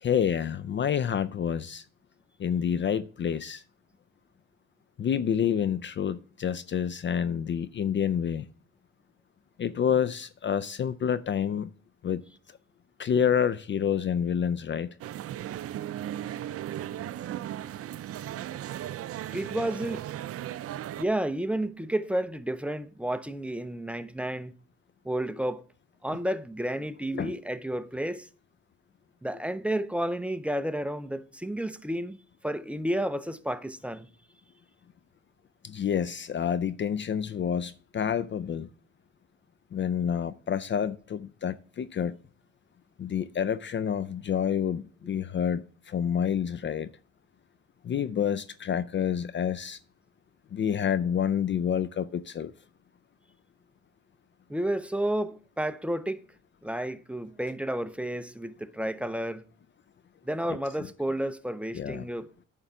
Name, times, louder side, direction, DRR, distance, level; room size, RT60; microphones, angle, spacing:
voice 1, 0.0-1.8 2.4-3.6 5.0-8.5 9.6-11.7 12.0-12.2 13.0-15.0 27.1-27.3 35.6-38.7 39.7-42.2 43.0-46.9 47.8-49.8 50.5-52.5 61.7-62.1, left 8 dB, 40° left, 0.4 m, -28 dB
sound 1, 15.0-21.1, right 12 dB, 50° right, 0.4 m, -36 dB
voice 2, 19.3-20.1 21.0-24.5 25.0-25.6 26.0-28.3 29.2-32.2 32.4-34.1 54.5-56.2 56.6-59.4 60.2-62.5, right 1 dB, 5° right, 0.6 m, -31 dB
9.8 x 3.6 x 6.8 m
cardioid pair, 90°, 30 cm